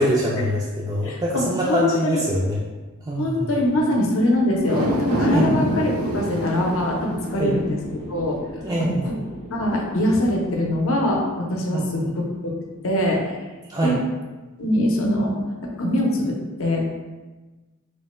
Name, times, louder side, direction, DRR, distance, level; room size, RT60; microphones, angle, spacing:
voice 1, 0.0-2.6 3.0-3.6 5.3-5.6 7.4-7.6 8.6-9.1 11.7-12.1 13.7-13.9, equal, 20° right, -5 dB, 0.3 m, -24 dB
voice 2, 1.0-2.2 3.2-8.4 8.8-9.1 9.5-12.5 12.8-13.3 13.8-14.0 14.6-15.4 15.7-16.9, left 1 dB, 65° left, -1 dB, 0.6 m, -23 dB
sound 1, 4.6-11.1 11.5-11.6, equal, 75° right, 0.7 m, -28 dB
3.2 x 2.1 x 4.2 m, 1.2 s
head